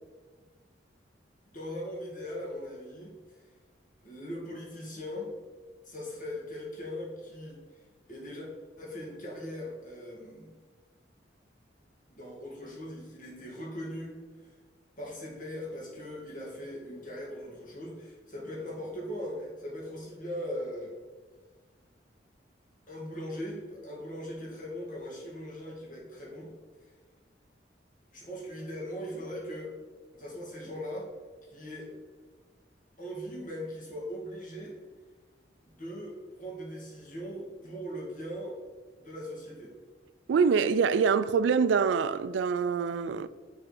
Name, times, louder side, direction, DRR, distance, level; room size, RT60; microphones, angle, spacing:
voice 1, 1.5-3.5 4.0-5.3 5.8-7.6 8.1-8.5 8.8-10.5 12.1-14.2 15.0-21.0 22.9-26.5 28.1-29.7 30.1-31.1 31.5-31.9 33.0-34.7 35.6-38.6 39.0-39.7, equal, 45° left, 2.2 m, -40 dB
voice 2, 40.3-43.3, right 5 dB, 80° right, 0.3 m, -25 dB
6.8 x 3.6 x 5.9 m
head